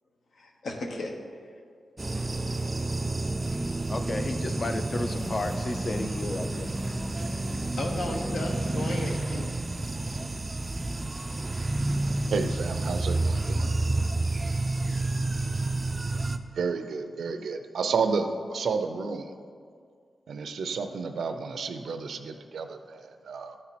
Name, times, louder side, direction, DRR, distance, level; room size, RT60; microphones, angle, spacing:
voice 1, 0.3-1.2 7.8-9.5, left 2 dB, 75° left, 1 dB, 1.1 m, -34 dB
sound 1, 2.0-16.4, right 2 dB, 25° right, 0.3 m, -29 dB
voice 2, 3.9-6.7, left 2 dB, 35° left, 8 dB, 0.5 m, -32 dB
voice 3, 12.3-13.7 16.6-19.4 20.3-23.5, right 5 dB, 90° right, 7 dB, 0.5 m, -31 dB
12.5 x 4.3 x 4.2 m, 2.1 s
wide cardioid pair, 130°, 0 cm